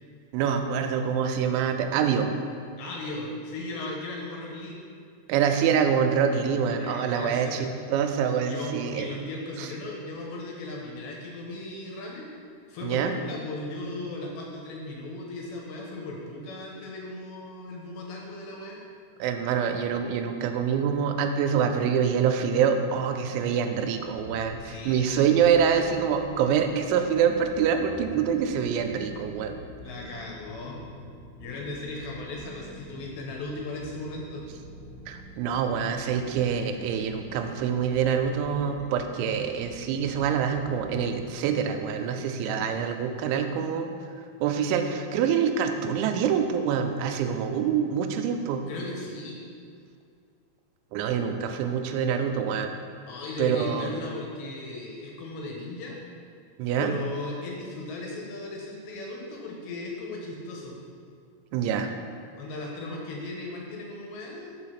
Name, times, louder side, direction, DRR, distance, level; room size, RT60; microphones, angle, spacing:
voice 1, 0.3-2.3 5.3-9.1 9.6-9.7 12.8-13.2 19.2-29.6 35.1-43.9 44.4-48.6 50.9-52.7 53.4-53.9 56.6-57.0 61.5-61.9, right 7 dB, 90° right, 6 dB, 2.9 m, -25 dB
voice 2, 2.8-4.8 6.7-7.7 8.4-12.3 12.7-18.8 24.6-25.3 29.8-30.8 31.4-34.4 42.3-42.7 48.7-49.4 53.1-56.0 56.8-60.7 62.4-64.6, left 2 dB, 80° left, -2 dB, 3.0 m, -37 dB
sound 1, 24.0-41.4, equal, 45° left, 1.5 m, -46 dB
6.1 x 4.9 x 5.8 m, 2.4 s
omnidirectional pair, 5.2 m